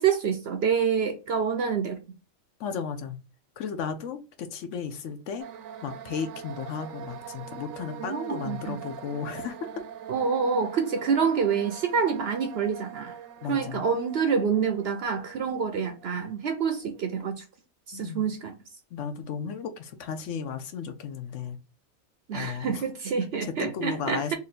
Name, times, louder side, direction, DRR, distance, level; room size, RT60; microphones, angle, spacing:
voice 1, 0.0-2.0 8.1-8.8 10.1-13.2 13.5-17.4 17.9-18.5 22.3-24.3, right 6 dB, 60° right, 0.7 m, -27 dB
voice 2, 2.6-3.2 3.6-5.5 5.8-9.7 13.4-13.9 17.9-18.3 18.9-21.6 22.3-22.8 23.4-24.3, left 6 dB, 70° left, 0.9 m, -34 dB
sound 1, 5.4-17.3, right 8 dB, 80° right, 1.0 m, -43 dB
2.9 x 2.6 x 4.0 m
omnidirectional pair, 1.4 m